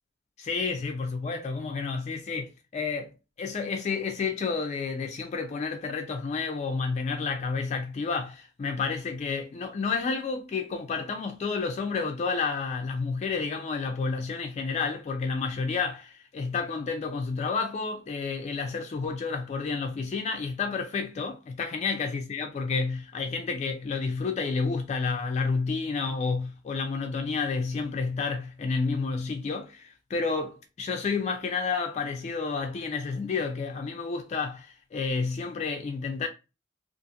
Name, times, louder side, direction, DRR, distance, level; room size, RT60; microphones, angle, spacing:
voice 1, 0.4-3.1 3.4-36.3, left 4 dB, 35° left, 0.3 m, -30 dB
2.7 x 2.4 x 2.3 m
head